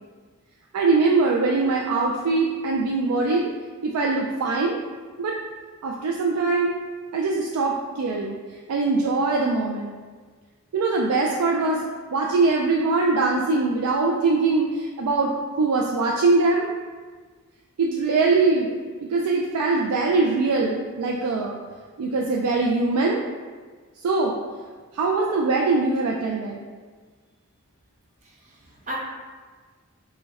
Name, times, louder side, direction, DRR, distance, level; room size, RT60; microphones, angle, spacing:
voice 1, 0.7-3.5 3.8-4.8 5.2-5.4 5.8-6.7 7.1-8.4 8.7-9.9 10.7-11.8 12.1-16.7 17.8-18.7 19.0-21.6 22.0-23.2 24.0-24.4 24.9-26.6, right 3 dB, 90° right, -1 dB, 0.4 m, -22 dB
voice 2, 28.2-28.9, equal, 35° right, -4 dB, 0.8 m, -37 dB
4.5 x 2.2 x 4.0 m, 1.5 s
head